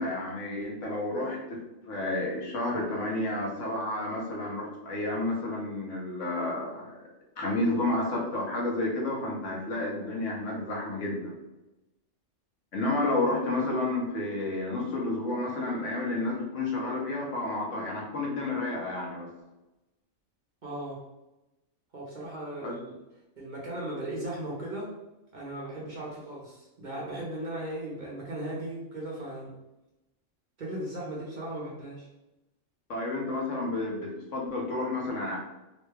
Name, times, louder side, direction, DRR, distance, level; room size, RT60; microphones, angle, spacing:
voice 1, 0.0-1.6 1.9-7.0 7.4-11.3 12.7-19.3 22.6-22.8 32.9-35.4, left 2 dB, 80° left, -2 dB, 1.1 m, -31 dB
voice 2, 20.6-21.0 21.9-23.0 23.4-24.9 25.3-29.5 30.6-32.1, right 1 dB, 45° right, -5 dB, 0.8 m, -37 dB
3.0 x 2.2 x 3.2 m, 0.99 s
omnidirectional pair, 1.3 m